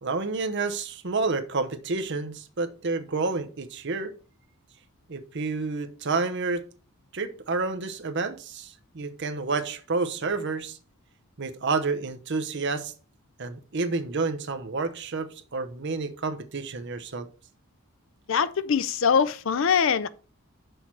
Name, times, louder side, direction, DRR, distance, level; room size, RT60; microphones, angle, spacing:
voice 1, 0.0-4.1 5.1-6.6 7.1-10.8 11.4-12.9 13.4-17.3, right 3 dB, 55° right, 0.8 m, -29 dB
voice 2, 18.3-20.1, left 6 dB, 60° left, 0.5 m, -23 dB
6.4 x 4.6 x 5.9 m
head